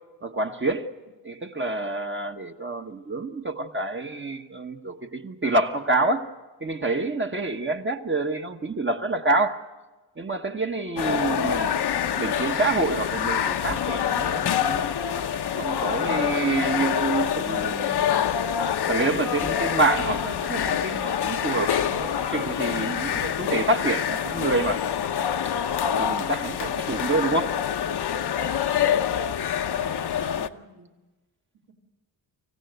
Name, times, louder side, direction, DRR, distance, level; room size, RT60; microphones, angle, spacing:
voice 1, 0.2-0.9 1.2-6.3 6.6-9.6 10.2-11.8 12.2-14.9 15.5-18.2 18.9-24.8 25.4-25.6 26.0-27.6, right 2 dB, 25° right, 5 dB, 1.2 m, -27 dB
sound 1, 11.0-30.5, left 8 dB, 60° left, 0.9 m, -26 dB
voice 2, 28.7-29.1 29.5-31.0 31.5-31.7, right 1 dB, 65° right, -1 dB, 3.7 m, -53 dB
26.0 x 16.0 x 8.0 m, 1.2 s
wide cardioid pair, 115°, 44 cm